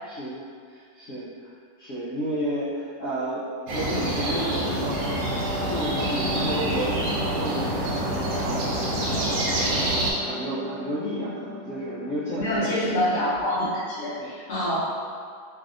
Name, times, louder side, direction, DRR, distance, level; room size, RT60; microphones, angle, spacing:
voice 1, 0.0-0.4 0.7-1.5 1.8-3.4 3.7-5.3 5.6-6.9 7.2-9.5 10.2-13.0 14.2-14.3, right 1 dB, 80° left, -9 dB, 0.6 m, -32 dB
sound 1, 3.7-10.1, right 1 dB, 75° right, 1.1 m, -26 dB
Wind instrument woodwind instrument, 4.9-13.0, equal, 50° right, 0.8 m, -38 dB
voice 2, 12.4-14.8, left 1 dB, 45° left, -10 dB, 0.8 m, -26 dB
3.2 x 2.6 x 2.4 m, 2.1 s
omnidirectional pair, 2.0 m